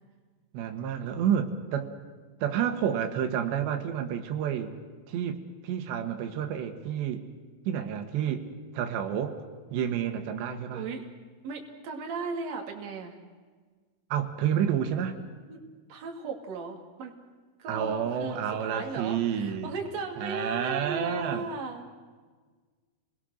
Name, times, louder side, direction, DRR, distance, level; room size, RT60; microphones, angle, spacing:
voice 1, 0.5-1.9 2.4-4.7 5.1-7.2 7.7-8.5 8.7-9.4 9.7-10.8 14.1-15.2 17.7-19.7 20.2-21.5, right 9 dB, 90° right, 6 dB, 3.8 m, -29 dB
voice 2, 10.7-11.0 11.4-13.2 15.5-15.6 15.9-17.1 17.6-21.9, right 4 dB, 45° right, 2 dB, 3.3 m, -36 dB
29.5 x 20.5 x 6.5 m, 1.4 s
omnidirectional pair, 4.9 m